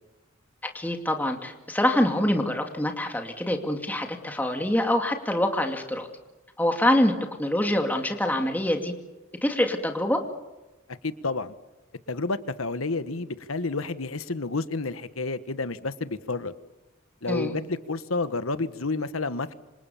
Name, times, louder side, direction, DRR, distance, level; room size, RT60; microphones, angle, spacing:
voice 1, 0.7-6.1 6.6-7.1 7.4-8.9 9.4-10.2 17.3-17.5, left 1 dB, 10° left, 3 dB, 2.5 m, -25 dB
voice 2, 11.0-11.5 12.1-16.5 17.2-19.5, left 3 dB, 85° left, 12 dB, 1.4 m, -30 dB
28.0 x 26.5 x 7.1 m, 1.1 s
head